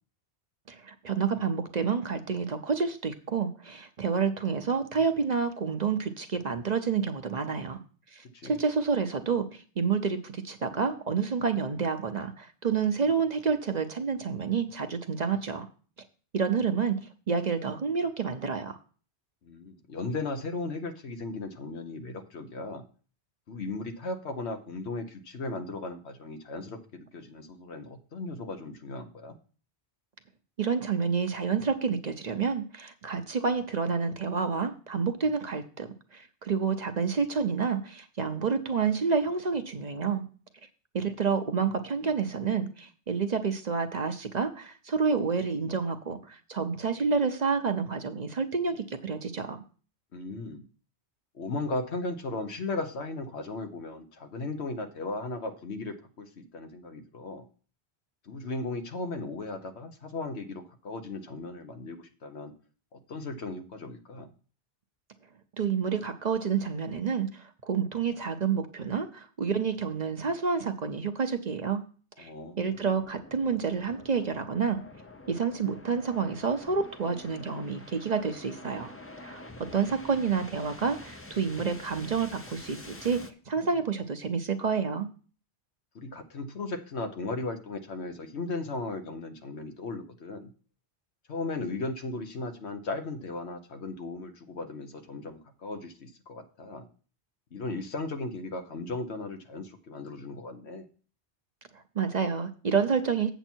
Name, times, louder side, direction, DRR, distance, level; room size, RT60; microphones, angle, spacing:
voice 1, 0.7-7.8 8.1-15.7 16.3-17.0 17.3-18.8 30.6-40.2 40.9-49.6 65.6-71.8 72.2-72.3 72.6-74.8 75.3-78.9 79.2-85.1 101.9-103.3, right 5 dB, 45° right, 8 dB, 0.7 m, -29 dB
voice 2, 19.4-22.8 23.5-29.4 50.1-50.7 51.3-57.5 58.2-62.5 62.9-64.3 72.2-72.6 85.9-90.5 91.3-96.9 97.5-100.9, left 3 dB, 80° left, 6 dB, 1.3 m, -36 dB
sound 1, 72.7-83.3, left 2 dB, 15° left, 0.5 m, -47 dB
8.1 x 7.0 x 4.4 m, 0.40 s
omnidirectional pair, 1.1 m